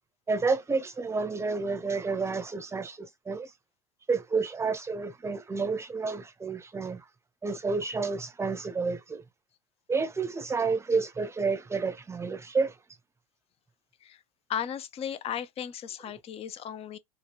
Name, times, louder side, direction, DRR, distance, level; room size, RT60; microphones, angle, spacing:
voice 1, 0.3-3.5 4.1-7.0 7.4-9.2 9.9-12.8, right 4 dB, 15° right, 0.7 m, -30 dB
voice 2, 14.5-17.0, left 9 dB, 35° left, 0.5 m, -35 dB
2.7 x 2.3 x 3.5 m
hypercardioid pair, 80°, 18 cm